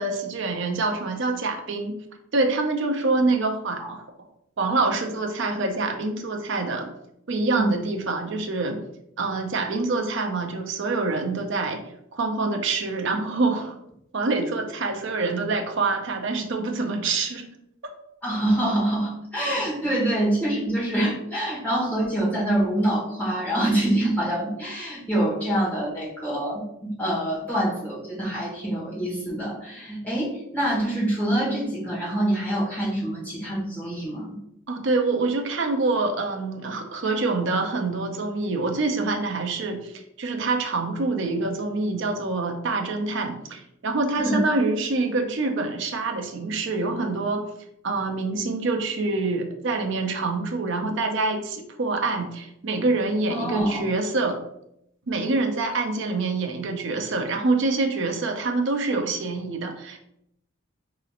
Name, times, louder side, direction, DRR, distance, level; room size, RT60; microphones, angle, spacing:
voice 1, 0.0-2.0 2.3-4.0 4.6-6.9 7.3-8.8 9.2-11.8 12.1-13.8 14.1-17.5 34.7-47.5 47.8-54.4 55.1-60.0, right 3 dB, 60° right, 4 dB, 0.5 m, -26 dB
voice 2, 18.2-34.4 44.2-44.4 53.3-53.9, right 1 dB, 10° left, -7 dB, 1.5 m, -25 dB
3.9 x 3.0 x 2.4 m, 0.76 s
head